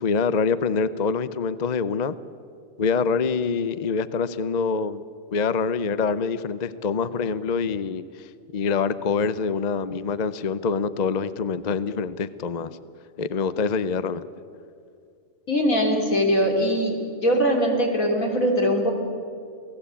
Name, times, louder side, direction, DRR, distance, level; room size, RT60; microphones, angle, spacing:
voice 1, 0.0-2.2 2.8-5.0 5.3-12.8 13.2-14.2, left 5 dB, 40° left, 14 dB, 0.7 m, -25 dB
voice 2, 15.5-16.9 17.2-18.9, equal, 85° left, 2 dB, 3.9 m, -21 dB
28.0 x 17.5 x 8.5 m, 2.4 s
omnidirectional pair, 1.4 m